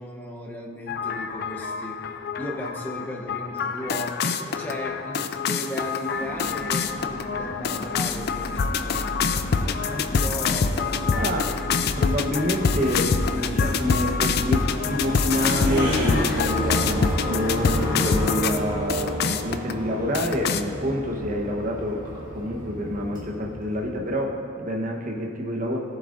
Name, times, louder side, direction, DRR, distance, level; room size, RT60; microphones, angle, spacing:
voice 1, 0.0-9.0 9.5-11.6 11.9-12.0, equal, 10° left, -1 dB, 0.8 m, -36 dB
sound 1, 0.9-18.6 18.9-19.7 20.1-20.6, left 5 dB, 50° left, 0.4 m, -26 dB
sound 2, 6.1-18.5, left 1 dB, 65° left, 1.3 m, -34 dB
voice 2, 11.1-11.5 12.0-25.8, equal, 40° right, 0 dB, 1.1 m, -27 dB
sound 3, 13.0-24.1, equal, 20° right, 2.0 m, -32 dB
17.0 x 7.6 x 2.6 m, 2.6 s
head